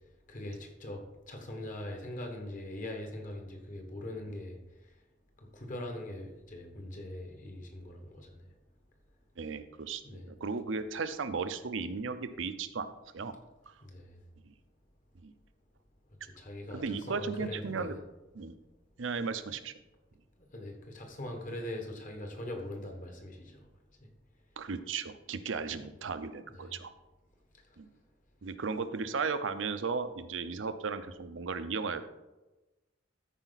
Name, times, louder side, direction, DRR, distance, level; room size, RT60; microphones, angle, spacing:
voice 1, 0.3-4.6 5.5-8.3 10.0-10.3 13.8-14.2 16.2-18.0 20.5-23.7 24.0-24.1 26.5-26.8, left 1 dB, 45° left, 1.5 m, -42 dB
voice 2, 9.4-13.3 15.2-15.3 16.7-18.0 18.3-18.5 19.0-19.7 24.6-26.9 27.8-27.9 28.4-32.0, right 5 dB, 80° right, 0.6 m, -35 dB
13.5 x 5.0 x 4.1 m
head